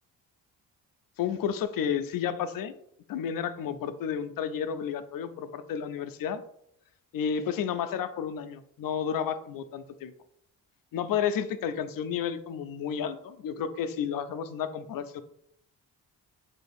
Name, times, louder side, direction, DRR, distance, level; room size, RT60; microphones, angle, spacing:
voice 1, 1.2-2.7 3.1-6.4 7.1-10.1 10.9-15.2, left 8 dB, 55° left, 11 dB, 0.5 m, -31 dB
3.6 x 2.6 x 3.4 m, 0.71 s
supercardioid pair, 60°, 40 cm